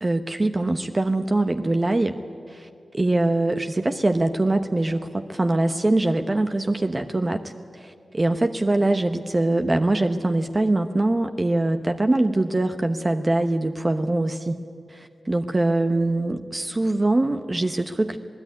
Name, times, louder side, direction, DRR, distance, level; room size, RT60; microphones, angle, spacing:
voice 1, 0.0-2.2 2.5-2.7 2.9-14.6 14.9-18.2, right 2 dB, 30° right, 7 dB, 1.0 m, -23 dB
27.0 x 18.0 x 9.6 m, 2.4 s
cardioid pair, 65°, 0 cm